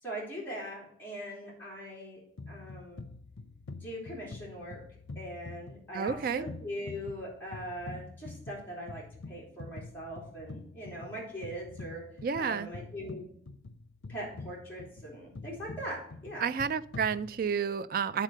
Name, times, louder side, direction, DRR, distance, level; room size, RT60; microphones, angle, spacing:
voice 1, 0.0-2.2 2.5-3.0 3.8-4.8 5.1-12.0 12.4-13.3 14.1-16.5, equal, 10° left, -6 dB, 3.1 m, -41 dB
sound 1, 2.4-17.7, left 3 dB, 90° left, 0.6 m, -46 dB
voice 2, 5.9-6.5 12.2-12.7 16.4-18.2, right 6 dB, 50° right, 14 dB, 0.3 m, -30 dB
9.0 x 4.1 x 6.4 m, 0.65 s
head